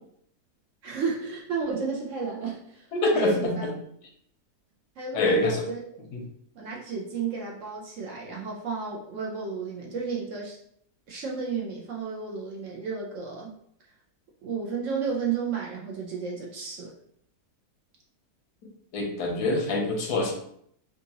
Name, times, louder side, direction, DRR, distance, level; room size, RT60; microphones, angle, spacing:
voice 1, 0.8-2.8 3.1-3.7 5.0-5.8 6.5-10.6 11.1-13.5 14.4-16.9, right 5 dB, 65° right, -2 dB, 0.8 m, -32 dB
voice 2, 2.9-3.5 5.1-5.7 6.1-6.2 18.9-20.3, left 2 dB, 80° left, 1 dB, 1.4 m, -25 dB
3.8 x 2.5 x 2.8 m, 0.68 s
omnidirectional pair, 1.7 m